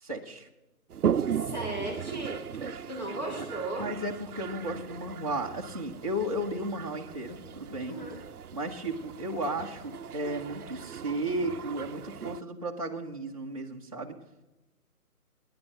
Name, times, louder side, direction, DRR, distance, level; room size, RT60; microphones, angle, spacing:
voice 1, 0.0-0.5 2.6-2.8 3.4-3.5 3.8-8.0 8.5-14.1, right 1 dB, 25° right, -3 dB, 0.7 m, -34 dB
Toilet flush, 0.9-12.4, right 8 dB, 75° right, 0.6 m, -37 dB
voice 2, 1.3-2.5 2.9-3.9 7.9-8.2, right 1 dB, 30° left, -3 dB, 2.1 m, -35 dB
14.0 x 9.7 x 6.0 m, 1.0 s
figure-of-eight pair, 165°, 45 cm